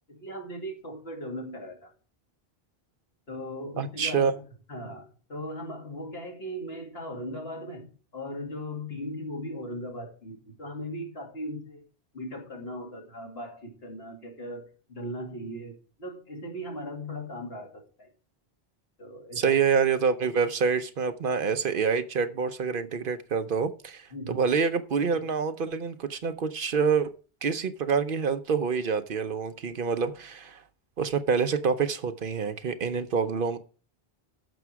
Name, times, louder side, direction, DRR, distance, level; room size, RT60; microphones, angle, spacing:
voice 1, 0.1-1.9 3.3-4.4 4.7-11.8 12.1-18.1 19.0-19.5 24.1-24.5, equal, 75° left, 2.8 m, -38 dB
voice 2, 3.8-4.3 19.4-27.1 27.4-30.6 31.0-33.6, right 6 dB, 60° right, 0.9 m, -27 dB
14.0 x 6.0 x 4.7 m
omnidirectional pair, 1.0 m